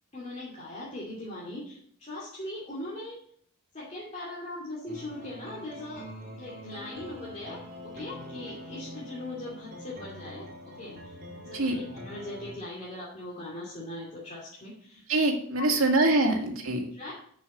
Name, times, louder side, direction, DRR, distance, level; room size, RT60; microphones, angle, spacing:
voice 1, 0.1-3.2 3.7-6.1 6.4-11.2 11.4-15.1 15.5-15.9 16.9-17.1, left 1 dB, 30° left, -7 dB, 2.7 m, -40 dB
sound 1, 4.9-12.6, left 1 dB, 45° right, 2.7 m, -44 dB
voice 2, 15.1-16.9, right 2 dB, 75° right, 1 dB, 2.0 m, -24 dB
7.0 x 6.6 x 7.1 m, 0.62 s
head